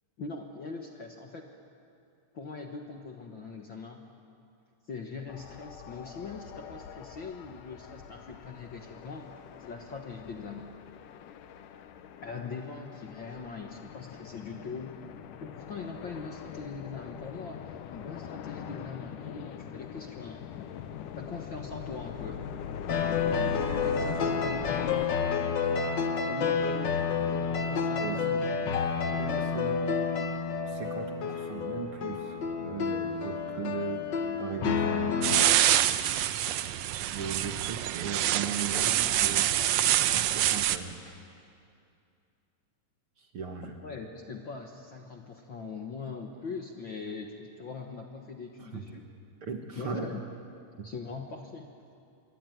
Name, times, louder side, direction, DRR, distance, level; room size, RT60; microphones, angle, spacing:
voice 1, 0.2-1.5 2.3-4.0 4.9-9.3 9.6-10.8 12.2-15.0 15.4-20.4 21.2-22.5 23.6-28.6 43.6-49.0 49.7-50.2 50.8-51.7, left 4 dB, 50° left, 3 dB, 1.6 m, -41 dB
sound 1, 5.3-25.1, left 9 dB, 85° left, 2.6 m, -42 dB
sound 2, 22.9-35.5, left 5 dB, 65° left, 1.1 m, -29 dB
voice 2, 29.1-30.0 30.7-35.6 36.6-36.7 37.1-39.5 39.9-41.2 43.2-43.8 48.6-49.0 49.4-50.1 50.8-50.9, right 6 dB, 50° right, 4 dB, 2.0 m, -38 dB
sound 3, 35.2-40.8, right 12 dB, 70° right, 1.7 m, -26 dB
25.5 x 22.5 x 9.4 m, 2.5 s
omnidirectional pair, 3.7 m